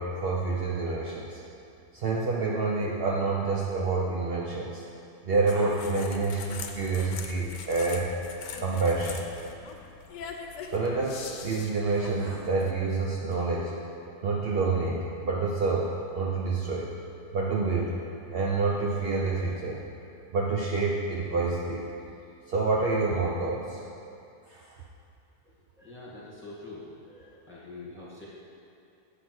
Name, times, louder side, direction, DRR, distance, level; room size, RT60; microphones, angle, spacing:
voice 1, 0.0-1.4 1.9-4.8 5.2-8.1 8.6-9.2 10.7-13.7 14.2-16.9 17.3-17.9 18.3-19.8 20.3-21.9 22.5-23.8 24.5-24.8, right 3 dB, 70° right, -3 dB, 0.5 m, -28 dB
sound 1, 5.5-12.7, left 6 dB, 90° left, 1.2 m, -42 dB
voice 2, 25.8-28.3, left 2 dB, 5° left, -8 dB, 1.7 m, -44 dB
8.1 x 4.0 x 6.0 m, 2.6 s
omnidirectional pair, 1.8 m